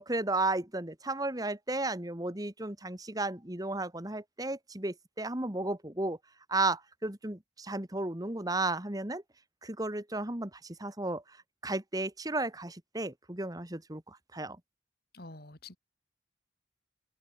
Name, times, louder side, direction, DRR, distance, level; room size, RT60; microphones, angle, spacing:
voice 1, 0.0-6.2 6.5-9.2 9.6-11.4 11.6-14.6, right 2 dB, 20° right, 2.1 m, -34 dB
voice 2, 15.1-15.8, left 2 dB, 60° left, 3.4 m, -47 dB
head